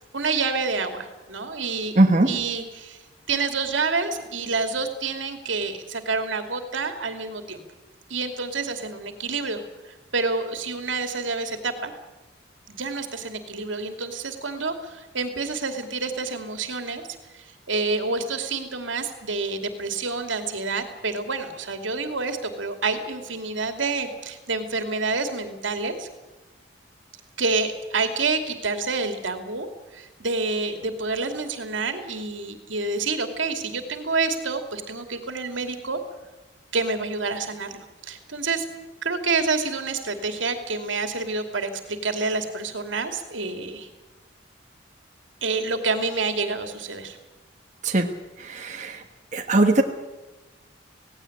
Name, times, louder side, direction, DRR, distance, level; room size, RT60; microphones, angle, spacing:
voice 1, 0.1-1.9 2.3-3.0 3.3-7.6 8.1-11.9 12.7-17.0 17.3-26.1 27.4-29.7 29.9-36.0 36.7-38.7 39.0-43.9 45.4-47.2, right 4 dB, 85° right, 6 dB, 2.7 m, -28 dB
voice 2, 1.9-2.3 47.8-48.1 48.4-49.0 49.3-49.8, right 2 dB, 40° right, 3 dB, 1.4 m, -20 dB
18.0 x 17.0 x 9.8 m, 1.1 s
head